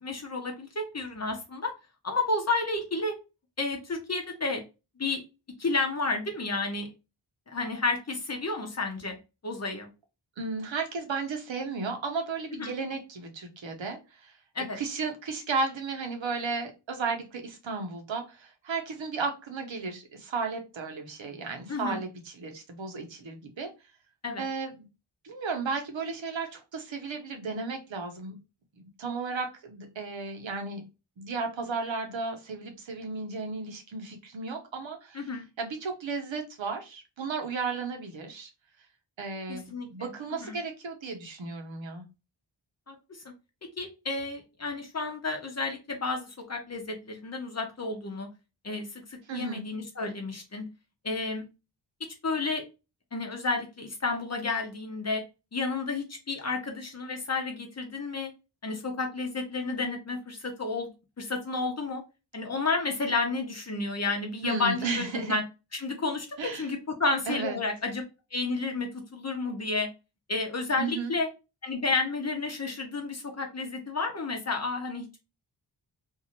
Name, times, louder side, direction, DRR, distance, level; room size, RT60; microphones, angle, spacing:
voice 1, 0.0-1.7 2.0-3.2 3.6-4.6 5.0-5.2 5.6-6.9 7.5-9.2 9.4-9.9 12.6-12.7 14.5-14.8 21.7-22.0 24.2-24.4 35.1-35.4 39.5-40.1 40.4-40.5 42.9-43.2 43.8-48.3 48.6-50.6 51.0-51.5 52.2-52.6 53.1-55.2 55.5-58.3 58.6-60.9 61.2-62.0 62.3-65.4 65.7-66.3 66.5-68.0 68.3-69.9 70.3-71.3 71.6-75.2, left 3 dB, 35° left, 2 dB, 0.8 m, -31 dB
voice 2, 10.4-14.4 14.7-23.7 24.4-24.8 25.2-28.4 28.8-30.8 31.2-35.3 35.6-38.5 39.2-42.0 49.3-49.7 64.4-65.4 66.4-66.7 67.3-67.6 70.8-71.1, right 4 dB, 75° right, 4 dB, 0.9 m, -34 dB
2.7 x 2.4 x 2.8 m, 0.28 s
wide cardioid pair, 90°, 46 cm